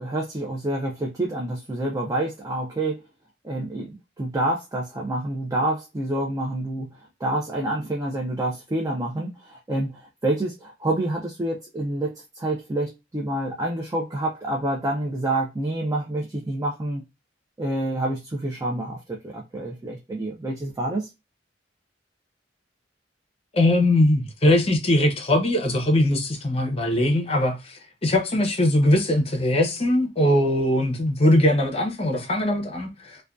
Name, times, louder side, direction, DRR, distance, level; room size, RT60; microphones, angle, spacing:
voice 1, 0.0-3.0 3.4-6.9 7.2-17.0 17.6-21.1, right 1 dB, 20° right, 0.4 m, -28 dB
voice 2, 23.5-33.2, left 1 dB, 30° left, 0.6 m, -21 dB
2.5 x 2.2 x 2.2 m
head